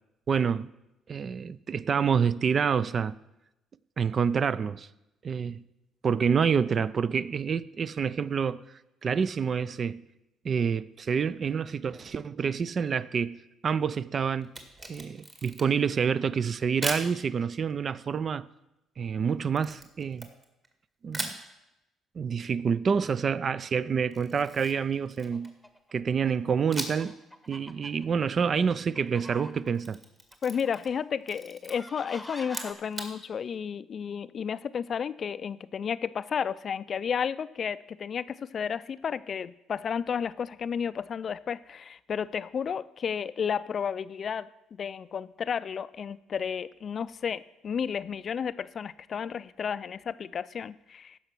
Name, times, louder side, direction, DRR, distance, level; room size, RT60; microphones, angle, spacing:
voice 1, 0.3-0.7 1.1-3.2 4.0-4.9 5.2-5.6 6.0-8.6 9.0-10.0 10.4-14.5 14.9-18.5 19.0-20.3 21.0-21.3 22.2-25.5 25.9-27.2 27.5-30.0, right 6 dB, 45° right, 0.4 m, -27 dB
Camera, 14.4-15.9 16.8-17.1 19.6-20.7 21.1-21.4 24.1-25.6 26.7-27.2 27.5-27.6 29.6-31.0 31.2-31.7 32.4-33.1, right 2 dB, 30° right, 1.9 m, -38 dB
sound 1, 25.2-25.9 26.2-26.4 26.8-29.8 30.3-30.9 31.7-32.7, left 1 dB, ahead, 1.0 m, -47 dB
voice 2, 30.4-51.2, left 7 dB, 45° left, 0.4 m, -32 dB
14.5 x 5.7 x 6.1 m
cardioid pair, 95°, 0 cm